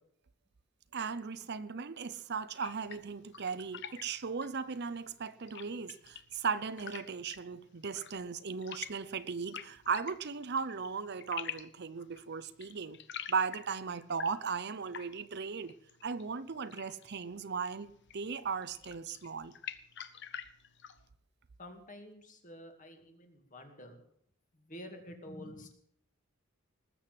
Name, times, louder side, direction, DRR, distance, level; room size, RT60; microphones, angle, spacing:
voice 1, 0.9-13.0 13.3-15.7 16.0-19.5, right 5 dB, 50° right, 0.7 m, -37 dB
sound 1, 2.6-21.1, left 9 dB, 55° left, 0.9 m, -49 dB
voice 2, 21.6-24.0 24.5-25.8, left 1 dB, 35° left, 2.5 m, -49 dB
19.5 x 7.9 x 7.6 m
head